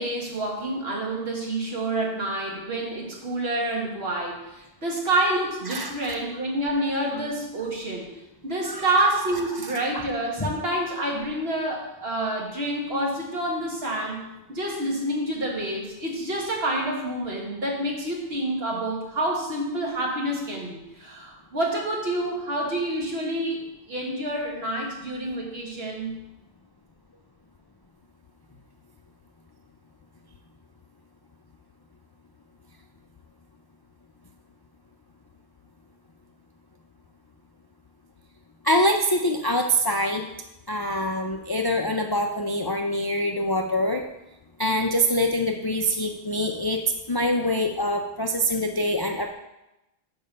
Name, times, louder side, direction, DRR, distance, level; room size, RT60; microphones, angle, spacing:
voice 1, 0.0-8.2 8.4-23.6 23.9-26.2, right 1 dB, 75° right, -2 dB, 1.9 m, -28 dB
voice 2, 38.6-40.3 40.7-44.0 44.6-46.8 47.1-49.3, equal, 40° left, 3 dB, 0.3 m, -24 dB
6.9 x 5.3 x 5.4 m, 0.95 s
omnidirectional pair, 1.1 m